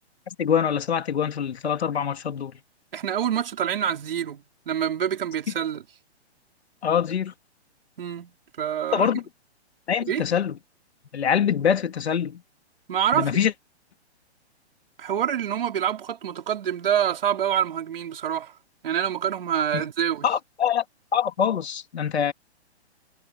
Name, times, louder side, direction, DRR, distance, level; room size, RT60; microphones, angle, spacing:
voice 1, 0.4-2.6 6.8-7.3 8.9-9.2 9.9-10.6 11.1-12.4 13.1-13.5 19.7-19.8 20.2-20.8 21.1-22.3, left 8 dB, 70° left, 3.2 m, -24 dB
voice 2, 2.9-5.8 8.0-9.1 10.1-10.2 12.9-13.3 15.0-18.5 18.8-20.3, right 9 dB, 55° right, 5.2 m, -26 dB
hypercardioid pair, 175°, 34 cm